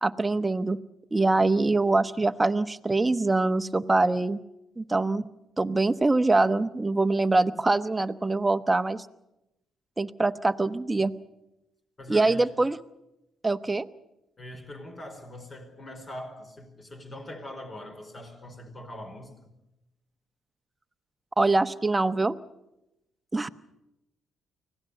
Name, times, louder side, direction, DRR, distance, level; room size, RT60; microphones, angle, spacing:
voice 1, 0.0-0.8 1.1-4.4 4.8-5.2 5.6-9.1 10.0-11.1 12.1-12.8 13.4-13.9 21.4-22.4 23.3-23.5, right 2 dB, 15° right, 1.0 m, -24 dB
voice 2, 12.0-12.5 14.4-19.5, left 1 dB, 30° left, 4.6 m, -42 dB
25.0 x 17.5 x 8.1 m
cardioid pair, 90°, 0 cm